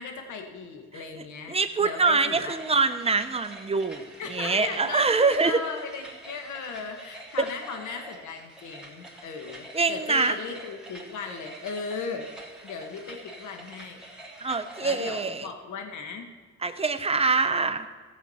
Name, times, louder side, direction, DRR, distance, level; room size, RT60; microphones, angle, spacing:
voice 1, 0.0-2.6 4.2-12.3 12.6-14.0 14.8-16.3, left 5 dB, 75° left, 5 dB, 1.4 m, -37 dB
voice 2, 1.5-5.6 9.7-10.4 14.4-15.5 16.6-17.9, right 4 dB, 20° right, 9 dB, 0.8 m, -24 dB
sound 1, 2.5-15.4, right 1 dB, 5° right, 2.2 m, -46 dB
15.0 x 7.3 x 4.3 m, 1.5 s
cardioid pair, 90°, 30 cm